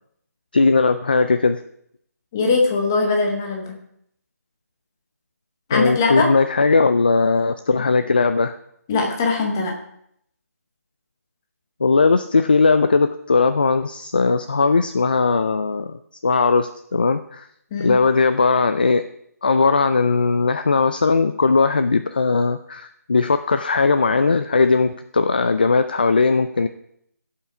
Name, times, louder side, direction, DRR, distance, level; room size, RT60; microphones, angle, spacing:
voice 1, 0.5-1.6 5.7-8.5 11.8-17.5 17.8-19.0 19.4-26.7, left 4 dB, 30° left, 10 dB, 0.3 m, -18 dB
voice 2, 2.3-3.8 5.7-6.3 8.9-9.8 17.7-18.0, left 3 dB, 10° left, 2 dB, 0.9 m, -21 dB
16.0 x 5.7 x 4.8 m, 0.73 s
hypercardioid pair, 175°, 9 cm